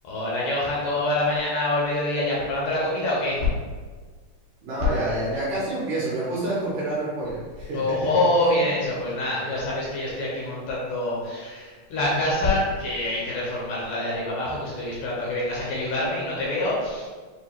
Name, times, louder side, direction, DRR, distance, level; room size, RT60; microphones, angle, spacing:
voice 1, 0.0-3.4 7.7-17.1, left 1 dB, 75° left, -5 dB, 2.1 m, -26 dB
voice 2, 4.6-8.0, right 2 dB, 75° right, -7 dB, 2.0 m, -28 dB
6.7 x 2.2 x 2.9 m, 1.5 s
omnidirectional pair, 4.4 m